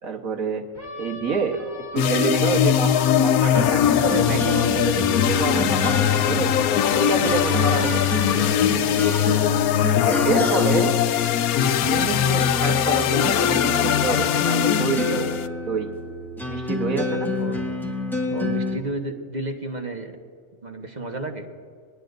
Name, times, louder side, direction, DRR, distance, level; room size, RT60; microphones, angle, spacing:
voice 1, 0.0-0.7 1.0-1.6 1.9-6.5 6.9-8.8 10.0-11.0 11.8-15.4 15.7-15.9 16.5-17.3, right 5 dB, 75° right, 2 dB, 1.7 m, -28 dB
sound 1, 0.7-9.6, equal, 30° left, 3.4 m, -38 dB
sound 2, 2.0-15.5, left 10 dB, 85° left, 1.1 m, -21 dB
sound 3, 3.6-18.8, left 2 dB, ahead, 1.8 m, -29 dB
voice 2, 7.6-8.1 10.1-11.0 17.4-17.6 18.3-20.2 20.6-21.5, right 2 dB, 35° right, 3 dB, 1.3 m, -32 dB
23.0 x 19.5 x 2.6 m, 2.1 s
omnidirectional pair, 1.5 m